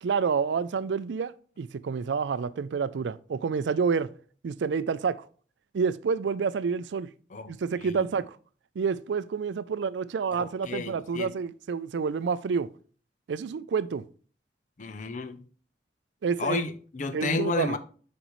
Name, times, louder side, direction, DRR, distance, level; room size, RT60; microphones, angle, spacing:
voice 1, 0.0-4.1 4.4-5.2 5.7-7.1 7.5-8.4 8.8-12.7 13.3-14.0 16.2-16.6 17.1-17.8, right 5 dB, 80° right, 0.4 m, -28 dB
voice 2, 10.3-11.3 14.8-15.4 16.4-17.8, left 4 dB, 45° left, 0.6 m, -31 dB
7.9 x 5.2 x 3.0 m
head